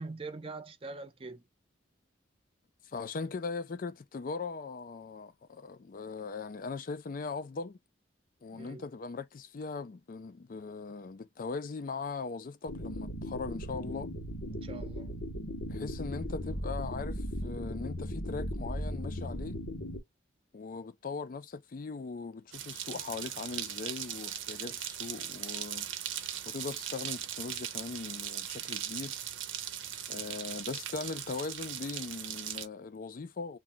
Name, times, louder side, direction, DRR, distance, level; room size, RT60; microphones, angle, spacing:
voice 1, 0.0-1.4 8.5-8.9 14.5-15.2, right 3 dB, 30° right, 0.5 m, -43 dB
voice 2, 2.8-7.8 8.4-14.1 15.7-19.6 20.5-29.1 30.1-33.6, left 4 dB, 45° left, 0.4 m, -40 dB
sound 1, 12.7-20.0, equal, 90° left, 1.0 m, -37 dB
sound 2, 22.5-32.7, right 10 dB, 85° right, 0.7 m, -39 dB
2.4 x 2.3 x 3.8 m
head